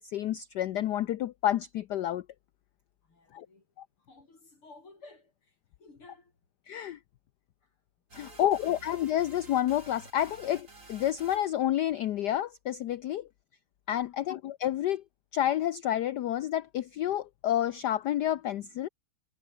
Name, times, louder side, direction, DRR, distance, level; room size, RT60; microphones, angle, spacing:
voice 1, 0.0-2.2 3.3-3.5 3.8-3.9 6.7-7.0 8.1-13.3 13.9-15.0 15.3-18.9, left 12 dB, 65° left, 1.1 m, -29 dB
voice 2, 3.0-3.7 4.0-6.3 7.6-7.7 8.2-8.9 14.0-14.3, left 3 dB, 85° left, 7.3 m, -55 dB
sound 1, 8.1-11.6, right 3 dB, 35° right, 4.6 m, -51 dB
omnidirectional pair, 2.3 m